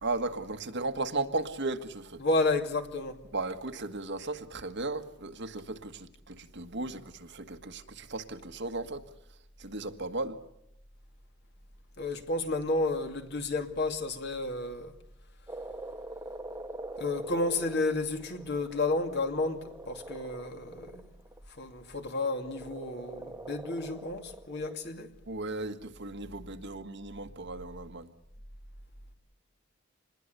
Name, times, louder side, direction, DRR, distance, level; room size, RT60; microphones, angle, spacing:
voice 1, 0.0-2.2 3.3-9.0 9.6-10.4 25.3-28.1, right 2 dB, 60° right, 1.7 m, -36 dB
voice 2, 2.2-3.2 12.0-14.9 17.0-21.1 21.5-25.1, left 2 dB, 55° left, 2.6 m, -31 dB
Frog, 15.5-21.4 22.2-24.8, right 1 dB, 15° right, 1.2 m, -44 dB
26.5 x 21.0 x 6.8 m
head